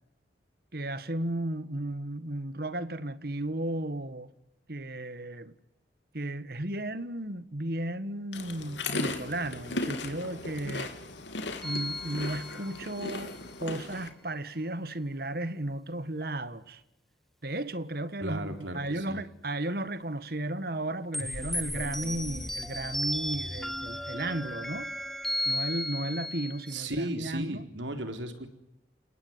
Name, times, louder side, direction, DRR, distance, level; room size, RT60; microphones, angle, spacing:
voice 1, 0.7-4.3 4.7-5.5 6.1-10.9 11.6-16.8 17.4-24.9 25.4-27.6, right 1 dB, 55° right, 1.6 m, -34 dB
sound 1, 8.3-14.1, left 2 dB, 80° left, 3.4 m, -37 dB
sound 2, 11.6-13.2 21.1-26.9, equal, ahead, 1.7 m, -35 dB
voice 2, 18.2-19.2 26.7-28.5, right 1 dB, 85° right, 4.1 m, -35 dB
30.0 x 18.5 x 9.8 m
head